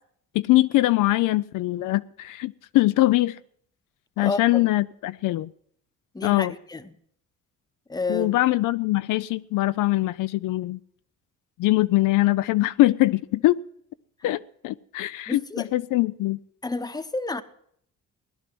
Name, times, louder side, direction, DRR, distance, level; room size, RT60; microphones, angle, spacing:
voice 1, 0.3-3.4 4.2-5.5 6.2-6.5 8.1-10.8 11.6-13.6 14.2-16.4, left 17 dB, 75° left, 0.5 m, -22 dB
voice 2, 4.2-4.7 6.1-6.9 7.9-8.4 15.3-15.7 16.6-17.4, left 3 dB, 10° left, 0.9 m, -30 dB
17.0 x 11.0 x 6.0 m
cardioid pair, 95°, 31 cm